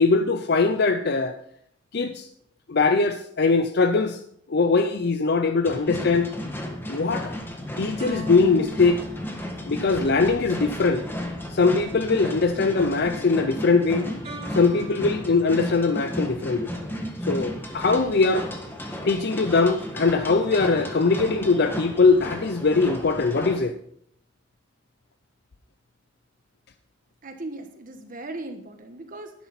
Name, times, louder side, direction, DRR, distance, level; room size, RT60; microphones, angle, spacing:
voice 1, 0.0-1.4 1.9-2.3 2.7-4.2 4.5-6.3 6.9-7.4 7.8-9.0 9.7-11.0 11.5-14.1 14.5-16.7 17.3-18.5 19.0-23.7, left 4 dB, 55° left, 9 dB, 0.6 m, -21 dB
sound 1, 5.6-23.6, equal, 10° left, 1.6 m, -34 dB
sound 2, 8.0-10.5 14.2-16.1 20.5-21.9, left 1 dB, 30° right, 4.2 m, -41 dB
voice 2, 27.2-29.3, right 2 dB, 45° right, 5 dB, 1.3 m, -37 dB
11.5 x 11.5 x 4.1 m, 0.69 s
head